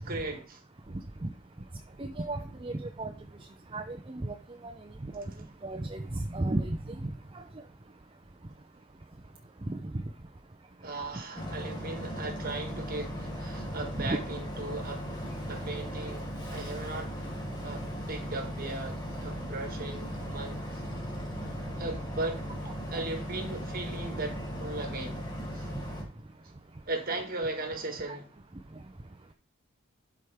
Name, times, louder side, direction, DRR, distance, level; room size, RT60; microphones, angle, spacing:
voice 1, 0.0-0.6 10.8-15.1 15.5-17.3 17.6-20.8 21.8-22.5 22.9-25.7 26.9-28.3, right 2 dB, 40° right, 1.7 m, -37 dB
voice 2, 2.0-3.1 3.7-4.3 5.0-5.3 5.6-7.1 9.7-9.8 14.0-14.2 27.1-27.2 28.1-28.2, right 2 dB, 25° right, 0.6 m, -33 dB
Boat Water vehicle, 11.4-26.0, equal, 20° left, 3.0 m, -37 dB
12.0 x 4.9 x 3.6 m
head